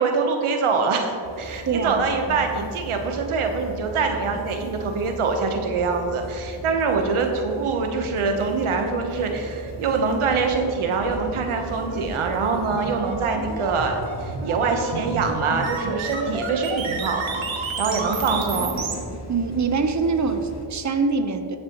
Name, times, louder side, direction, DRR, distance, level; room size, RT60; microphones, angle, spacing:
voice 1, 0.0-17.4 17.8-18.8, right 4 dB, 85° right, 4 dB, 1.1 m, -24 dB
sound 1, 1.2-20.7, equal, 35° left, 2.0 m, -38 dB
voice 2, 1.7-2.0 2.3-2.4 19.3-21.6, right 4 dB, 35° right, 7 dB, 0.9 m, -24 dB
sound 2, 8.9-18.9, right 4 dB, 65° right, 1.3 m, -32 dB
15.5 x 6.7 x 3.0 m, 2.4 s
cardioid pair, 60°, 49 cm